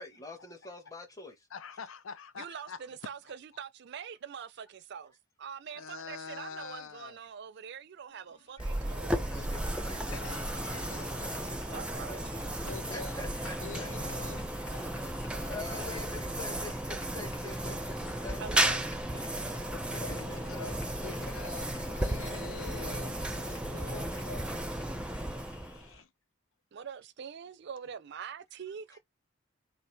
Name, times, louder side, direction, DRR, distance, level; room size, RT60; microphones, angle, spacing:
voice 1, 0.0-1.4 8.6-8.7 9.2-10.2 10.5-12.2 12.6-14.0 15.0-18.8 19.1-19.4 19.9-20.6 21.7-21.8 24.5-24.6, left 2 dB, 20° left, 1.1 m, -46 dB
voice 2, 1.5-2.8 5.7-7.2 9.0-9.1 10.1-11.3 12.6-13.3 13.6-14.5 19.7-24.6 25.7-26.1, left 5 dB, 85° left, 0.6 m, -46 dB
voice 3, 2.4-5.1 5.4-9.3 11.7-12.6 18.4-18.9 26.7-29.0, right 7 dB, 60° right, 0.4 m, -44 dB
sound 1, 8.1-26.0, left 4 dB, 65° left, 1.4 m, -54 dB
sound 2, 8.6-26.0, right 1 dB, 5° right, 0.5 m, -34 dB
sound 3, 10.7-24.7, left 2 dB, 45° left, 1.2 m, -52 dB
4.2 x 2.5 x 3.3 m
head